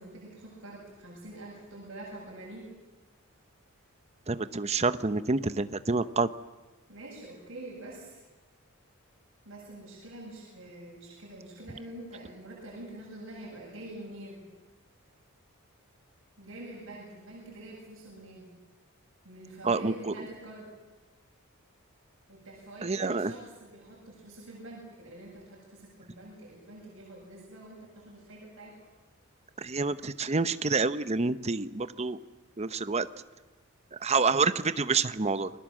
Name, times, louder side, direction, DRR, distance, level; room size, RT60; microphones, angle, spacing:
voice 1, 0.0-2.7 6.9-8.2 9.4-14.4 16.4-18.5 19.2-20.7 22.3-28.9, right 1 dB, 60° right, -3 dB, 7.9 m, -46 dB
voice 2, 4.3-6.3 19.6-20.1 22.8-23.3 29.6-32.2 32.6-33.1 34.0-35.5, right 4 dB, 30° right, 13 dB, 0.8 m, -28 dB
29.0 x 20.5 x 7.5 m, 1.2 s
head